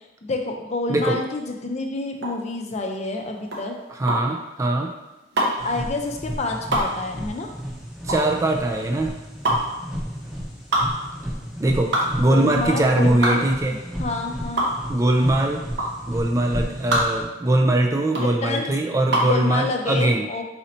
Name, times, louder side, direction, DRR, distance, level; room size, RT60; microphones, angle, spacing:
voice 1, 0.2-3.8 5.4-7.5 12.3-14.7 18.2-18.7 19.2-20.4, left 3 dB, 40° left, 2 dB, 0.5 m, -28 dB
voice 2, 0.9-1.2 4.0-4.9 8.0-9.1 11.6-11.9 12.2-13.8 14.9-15.6 16.1-20.3, right 1 dB, 20° right, 2 dB, 0.3 m, -21 dB
sound 1, 2.2-19.4, right 1 dB, 80° right, 1.0 m, -26 dB
sound 2, 5.6-17.2, equal, ahead, 0.8 m, -33 dB
4.2 x 2.7 x 4.2 m, 1.0 s
head